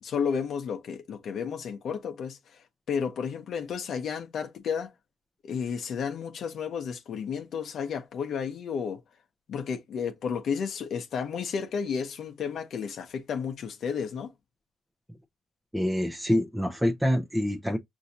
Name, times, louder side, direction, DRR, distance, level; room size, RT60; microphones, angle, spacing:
voice 1, 0.0-4.9 5.4-9.0 9.5-14.3, left 6 dB, 65° left, 0.8 m, -32 dB
voice 2, 15.7-17.8, equal, 5° right, 0.7 m, -26 dB
6.0 x 2.7 x 2.7 m
cardioid pair, 90°, 0 cm